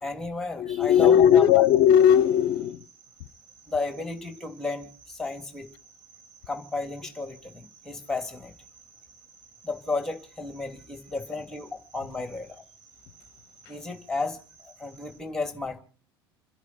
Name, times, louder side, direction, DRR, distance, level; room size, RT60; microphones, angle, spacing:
voice 1, 0.0-1.6 3.7-5.7 6.5-8.5 9.6-12.6 13.7-15.8, left 3 dB, 5° left, 2.8 m, -33 dB
voice 2, 0.6-2.8, left 9 dB, 55° left, 0.7 m, -18 dB
Cricket, 0.8-15.2, right 5 dB, 60° right, 6.9 m, -56 dB
28.5 x 11.5 x 4.3 m
figure-of-eight pair, 65°, 13 cm